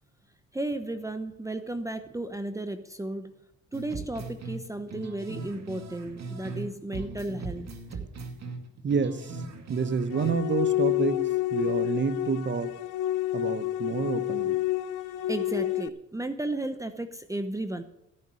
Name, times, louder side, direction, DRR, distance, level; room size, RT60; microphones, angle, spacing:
voice 1, 0.5-3.3 3.7-8.0 15.3-17.8, right 1 dB, 10° right, 9 dB, 0.9 m, -34 dB
sound 1, 3.7-6.7 6.9-10.3, right 3 dB, 60° right, 2.3 m, -39 dB
voice 2, 8.8-9.4 9.7-12.7 13.3-14.6, right 5 dB, 40° right, 13 dB, 1.2 m, -29 dB
sound 2, 10.1-15.9, left 14 dB, 85° left, 0.7 m, -29 dB
14.5 x 9.4 x 6.4 m, 0.80 s
cardioid pair, 90°, 30 cm